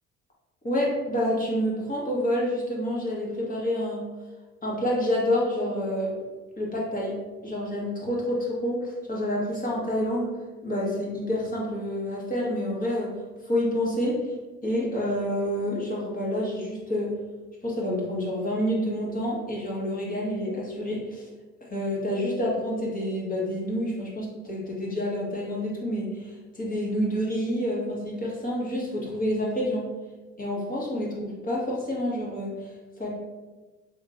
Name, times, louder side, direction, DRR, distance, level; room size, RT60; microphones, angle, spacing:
voice 1, 0.6-4.0 4.6-6.2 6.6-10.3 10.6-13.1 13.4-14.3 14.6-17.1 17.6-21.2 21.7-29.8 30.4-33.1, equal, 25° left, -4 dB, 1.3 m, -28 dB
3.5 x 3.1 x 2.5 m, 1.2 s
supercardioid pair, 65°, 32 cm